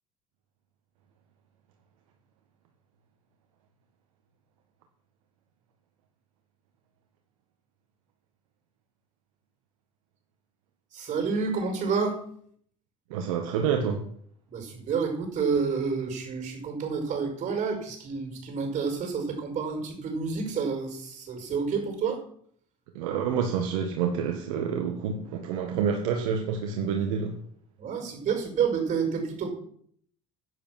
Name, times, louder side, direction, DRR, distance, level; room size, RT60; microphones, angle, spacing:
voice 1, 10.9-12.2 14.5-22.2 27.8-29.5, right 5 dB, 45° right, 3 dB, 5.4 m, -29 dB
voice 2, 13.1-14.0 22.9-27.3, right 7 dB, 75° right, 4 dB, 1.5 m, -28 dB
10.5 x 9.8 x 6.0 m, 0.62 s
hypercardioid pair, 65°, 17 cm